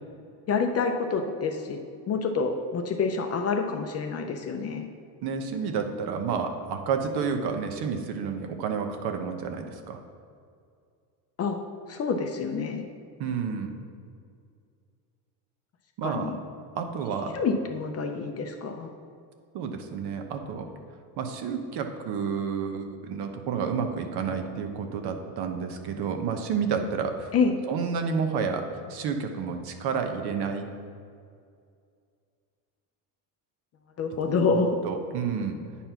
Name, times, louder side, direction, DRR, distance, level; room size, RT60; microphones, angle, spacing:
voice 1, 0.5-1.8 2.1-4.9 11.4-11.6 11.9-12.9 16.0-16.4 17.3-18.9 27.3-27.6 34.0-34.8, left 4 dB, 35° left, 5 dB, 0.6 m, -27 dB
voice 2, 5.2-10.0 13.2-13.7 16.0-16.3 16.7-17.3 19.5-20.7 21.2-27.3 27.7-30.7 34.5-34.6 34.8-35.6, right 6 dB, 55° right, 5 dB, 0.9 m, -30 dB
9.2 x 4.3 x 5.6 m, 2.3 s
cardioid pair, 135°, 46 cm